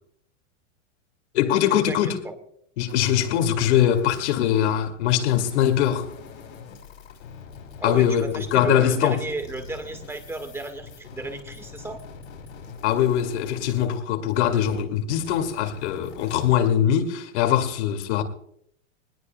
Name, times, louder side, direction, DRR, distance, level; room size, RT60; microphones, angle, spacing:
voice 1, 1.3-2.2 2.8-6.1 7.8-9.2 12.8-18.2, left 10 dB, 60° left, 2.3 m, -22 dB
sound 1, 2.9-14.8 15.1-16.5, left 6 dB, 90° left, 5.5 m, -43 dB
voice 2, 7.8-12.0, right 2 dB, 5° right, 1.4 m, -33 dB
21.5 x 20.0 x 2.2 m
supercardioid pair, 155°, 38 cm